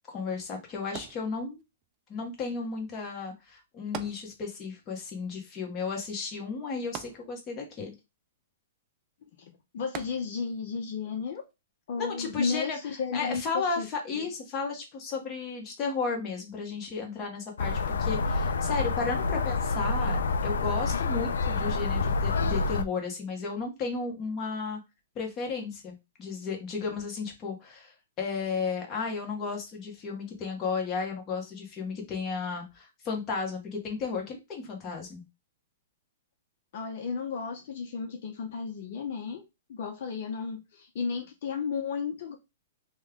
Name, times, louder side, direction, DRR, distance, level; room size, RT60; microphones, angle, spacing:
voice 1, 0.1-1.6 2.1-7.9 12.0-12.8 13.1-24.8 25.1-35.2, left 4 dB, 25° left, 0 dB, 1.3 m, -34 dB
sound 1, 0.9-1.8 3.9-4.8 5.1-5.2 6.9-7.8 9.9-10.7 11.3-11.4, right 10 dB, 30° right, 0.4 m, -42 dB
voice 2, 9.4-11.4 11.9-13.9 14.1-14.2 36.7-39.4 39.7-42.4, left 5 dB, 60° left, 3 dB, 0.7 m, -33 dB
sound 2, 17.6-22.8, left 4 dB, 80° left, 0.4 m, -28 dB
3.1 x 2.3 x 3.6 m, 0.23 s
hypercardioid pair, 135°, 0 cm